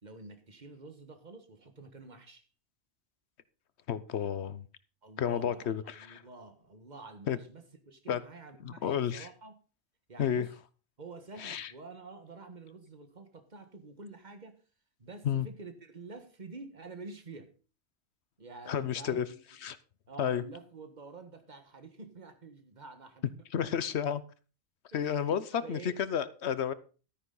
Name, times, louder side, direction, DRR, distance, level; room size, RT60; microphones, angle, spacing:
voice 1, 0.0-2.4 5.0-9.6 10.1-10.6 11.0-14.5 15.0-17.5 18.4-19.4 20.1-23.3 23.6-23.9 24.9-26.0, right 3 dB, 45° right, 8 dB, 1.7 m, -48 dB
voice 2, 3.9-4.6 5.2-6.2 7.3-7.4 8.1-8.2 8.6-9.3 10.2-10.5 11.4-11.7 15.2-15.5 18.7-19.3 19.6-19.8 20.2-20.4 23.5-24.2 24.9-25.4 25.7-26.7, left 8 dB, 80° left, 15 dB, 1.1 m, -31 dB
12.5 x 10.0 x 4.0 m, 0.35 s
omnidirectional pair, 1.1 m